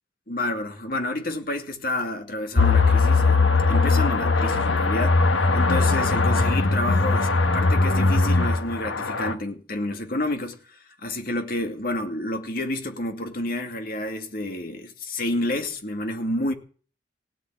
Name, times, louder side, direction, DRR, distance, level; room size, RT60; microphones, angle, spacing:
voice 1, 0.3-5.3 5.5-16.5, left 1 dB, 50° left, 2.3 m, -29 dB
sound 1, 2.6-9.3, left 3 dB, 85° left, 1.5 m, -20 dB
17.0 x 7.8 x 9.6 m
head